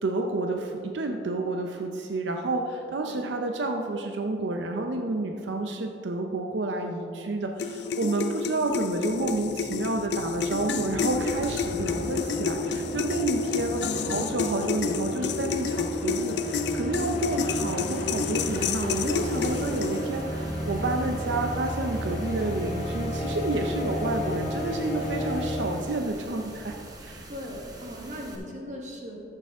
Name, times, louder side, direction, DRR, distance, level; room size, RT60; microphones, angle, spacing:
voice 1, 0.0-27.3, right 2 dB, 85° right, 3 dB, 0.6 m, -30 dB
sound 1, 7.6-20.2, left 5 dB, 70° left, 0.5 m, -30 dB
sound 2, 8.7-26.2, equal, 40° left, 1.4 m, -34 dB
sound 3, 18.4-28.4, right 1 dB, 20° right, 1.0 m, -45 dB
voice 2, 27.3-29.2, equal, 40° right, 0 dB, 1.4 m, -39 dB
14.0 x 6.7 x 3.6 m, 2.6 s
head